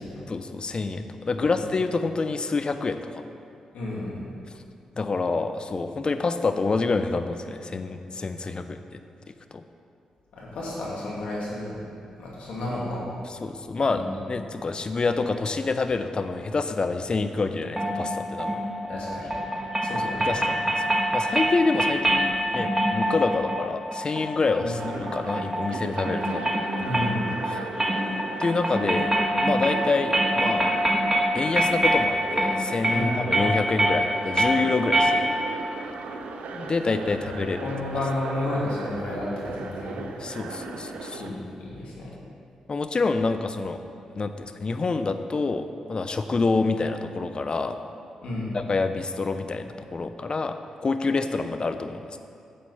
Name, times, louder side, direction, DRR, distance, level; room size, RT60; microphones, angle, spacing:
voice 1, 0.3-3.2 5.0-9.0 9.5-9.6 13.4-18.6 19.8-20.0 20.2-20.6 21.1-26.5 28.4-29.1 29.4-30.7 31.3-35.3 36.5-37.6 40.2-41.4 42.7-43.8 44.1-47.8 48.5-52.2, left 3 dB, 45° left, 9 dB, 0.7 m, -27 dB
voice 2, 3.7-4.2 10.3-11.8 12.2-13.1 13.9-14.1 18.9-19.3 19.8-20.4 24.6-24.8 26.8-27.2 32.9-33.3 37.0-37.1 37.6-40.0 41.2-42.1 48.2-48.6, left 1 dB, 70° left, -5 dB, 2.4 m, -32 dB
sound 1, 17.8-35.6, equal, 20° right, 1.8 m, -26 dB
sound 2, 24.7-41.3, right 4 dB, 75° right, 0.6 m, -37 dB
10.0 x 7.4 x 4.3 m, 2.5 s
hypercardioid pair, 40°, 2 cm